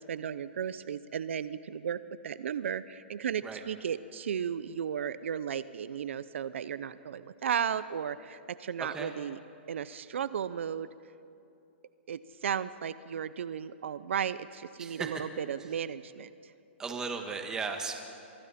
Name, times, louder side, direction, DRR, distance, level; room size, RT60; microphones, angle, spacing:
voice 1, 0.0-9.4 9.7-10.9 12.1-16.5, right 8 dB, 75° right, 15 dB, 0.6 m, -35 dB
voice 2, 8.8-9.1 14.8-15.1 16.8-18.0, right 5 dB, 10° right, 4 dB, 1.5 m, -36 dB
30.0 x 24.0 x 4.3 m, 2.7 s
hypercardioid pair, 160°, 7 cm